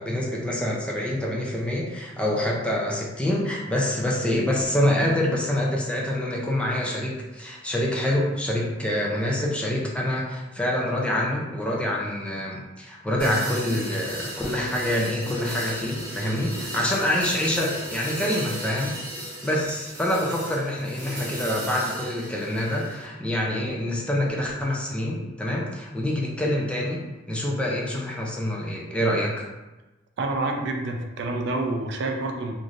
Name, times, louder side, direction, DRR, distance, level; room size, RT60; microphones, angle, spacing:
voice 1, 0.0-19.0 19.4-27.0 27.3-29.5, left 1 dB, 5° left, -3 dB, 0.4 m, -26 dB
sound 1, 13.2-23.0, right 1 dB, 25° right, 1.0 m, -36 dB
voice 2, 30.2-32.5, right 2 dB, 65° right, 3 dB, 0.4 m, -28 dB
3.1 x 2.5 x 2.5 m, 1.1 s
head